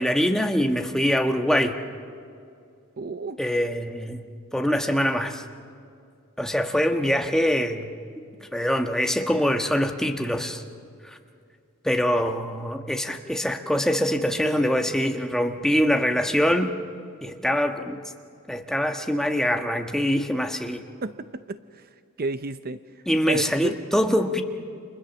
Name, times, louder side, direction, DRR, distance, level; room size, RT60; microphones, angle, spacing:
voice 1, 0.0-1.8 3.4-4.2 4.5-5.4 6.4-7.9 8.5-10.6 11.0-11.2 11.8-16.7 17.2-18.0 18.5-20.8 23.1-24.4, equal, ahead, 4 dB, 1.3 m, -24 dB
voice 2, 3.0-3.4 21.0-21.9 22.2-22.8 23.3-23.8, right 3 dB, 45° right, 12 dB, 0.6 m, -31 dB
30.0 x 27.0 x 7.1 m, 2.4 s
head